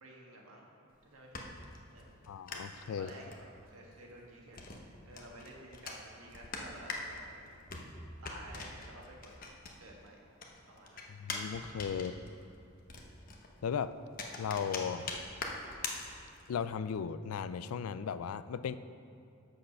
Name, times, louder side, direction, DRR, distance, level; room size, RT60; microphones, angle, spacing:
voice 1, 0.0-0.7 1.0-1.4 1.9-2.2 2.9-7.6 8.2-9.3 9.8-10.3 10.7-11.1 11.9-12.1, right 1 dB, 85° right, -2 dB, 1.6 m, -52 dB
sound 1, 0.9-10.1 10.4-16.6, left 3 dB, 40° left, 0.9 m, -44 dB
voice 2, 2.3-3.1 11.1-12.2 13.6-13.9 14.4-15.1 16.5-18.8, left 7 dB, 90° left, 14 dB, 0.4 m, -36 dB
7.6 x 6.5 x 5.7 m, 2.6 s
head